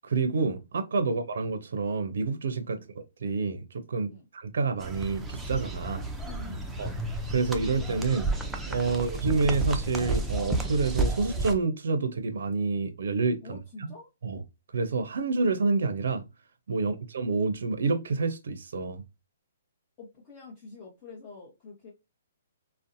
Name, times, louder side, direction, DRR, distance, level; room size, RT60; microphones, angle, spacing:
voice 1, 0.0-2.8 3.2-6.1 6.8-6.9 7.3-8.3 8.7-13.6 14.2-14.4 14.7-16.2 16.7-19.0, right 4 dB, 75° right, 0.4 m, -28 dB
sound 1, 4.8-11.5, right 2 dB, 10° right, 0.4 m, -31 dB
voice 2, 6.2-7.1 13.4-14.1 16.7-17.0 20.0-21.9, left 3 dB, 30° left, 0.8 m, -47 dB
2.6 x 2.0 x 2.5 m
hypercardioid pair, 140°, 0 cm